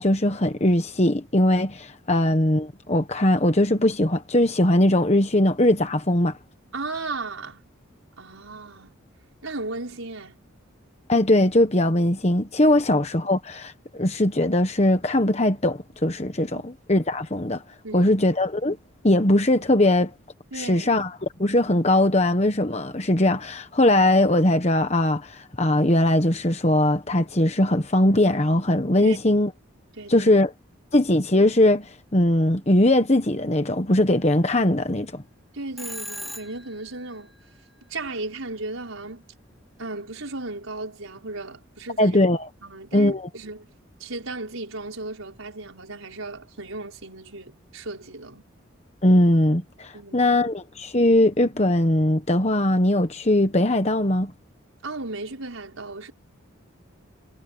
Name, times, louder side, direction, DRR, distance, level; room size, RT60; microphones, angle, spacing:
voice 1, 0.0-6.4 11.1-17.6 17.9-18.8 19.0-20.1 20.5-29.5 30.1-30.5 30.9-35.2 42.0-42.5 42.9-43.2 49.0-54.3, left 1 dB, 30° left, 1.2 m, -20 dB
voice 2, 6.7-7.7 8.2-9.0 9.4-10.4 16.5-16.7 17.8-18.1 20.5-20.9 29.0-29.2 29.9-30.3 35.5-37.3 37.9-39.2 39.8-42.2 42.6-43.7 44.0-48.4 49.9-50.3 54.8-56.1, right 2 dB, 85° right, 5.5 m, -35 dB
Telephone, 35.8-36.9, equal, ahead, 2.1 m, -36 dB
head